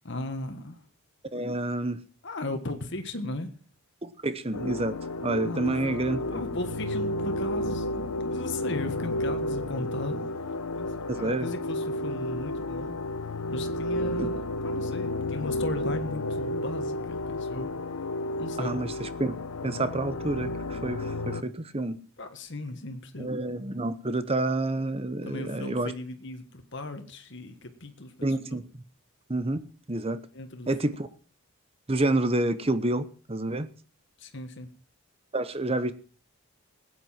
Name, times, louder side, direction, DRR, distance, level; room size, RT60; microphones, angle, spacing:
voice 1, 0.0-0.8 2.2-3.5 5.4-5.9 6.3-10.3 10.7-12.9 13.5-17.7 18.4-18.8 22.2-23.3 25.2-28.4 30.3-30.7 34.2-34.7, left 2 dB, 55° left, 1.6 m, -37 dB
voice 2, 1.3-2.0 4.0-5.0 5.2-6.4 11.1-11.5 14.2-14.4 18.6-19.4 19.6-22.0 23.2-25.9 28.2-28.6 29.3-30.2 30.7-31.1 31.9-33.7 35.3-35.9, right 2 dB, 25° right, 0.9 m, -29 dB
sound 1, 4.5-21.4, left 1 dB, 90° left, 0.9 m, -32 dB
15.5 x 9.5 x 5.8 m
head